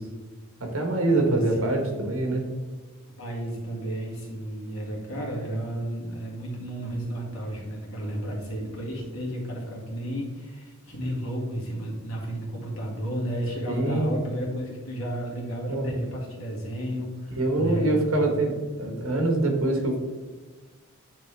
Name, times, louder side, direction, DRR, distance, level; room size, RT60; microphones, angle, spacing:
voice 1, 0.6-2.5 13.7-14.1 15.7-16.0 17.4-18.5 18.8-20.0, right 2 dB, 80° right, 2 dB, 1.4 m, -24 dB
voice 2, 1.3-2.0 3.1-18.3, right 1 dB, 75° left, -2 dB, 2.0 m, -33 dB
9.4 x 3.4 x 3.4 m, 1.3 s
head